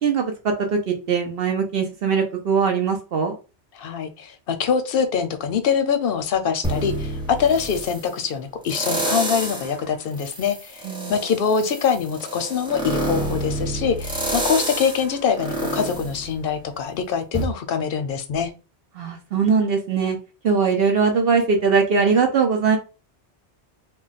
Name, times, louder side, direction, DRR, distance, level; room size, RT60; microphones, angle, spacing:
voice 1, 0.0-3.3 10.8-11.2 19.0-20.2 20.4-22.8, right 5 dB, 65° right, 4 dB, 0.8 m, -21 dB
voice 2, 3.7-18.5, left 6 dB, 65° left, 8 dB, 0.7 m, -24 dB
sound 1, 6.6-8.0 8.7-9.7 10.2-16.9 17.3-17.4, right 1 dB, 5° right, 0.6 m, -28 dB
2.3 x 2.2 x 3.9 m, 0.31 s
omnidirectional pair, 1.1 m